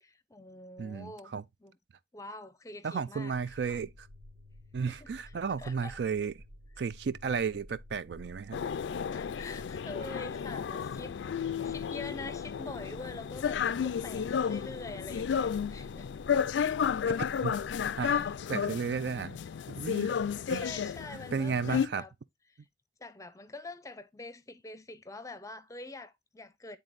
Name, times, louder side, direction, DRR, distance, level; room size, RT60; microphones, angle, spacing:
voice 1, 0.0-1.3 1.6-1.8 2.1-3.3 3.7-3.8 4.8-5.1 5.6-6.0 9.1-16.1 18.0-18.3 20.1-22.1 22.5-22.6 23.0-26.8, left 2 dB, 20° left, 0.5 m, -45 dB
voice 2, 0.8-1.4 2.8-4.1 4.7-6.3 6.8-8.6 17.4-17.5 18.0-18.2 18.5-19.4 19.7-20.1 20.5-20.7 21.1-22.0, right 6 dB, 65° right, 0.4 m, -33 dB
sound 1, 3.3-18.4, left 1 dB, 85° right, 2.0 m, -52 dB
sound 2, 8.5-21.9, left 7 dB, 80° left, 0.3 m, -32 dB
10.5 x 3.7 x 2.5 m
head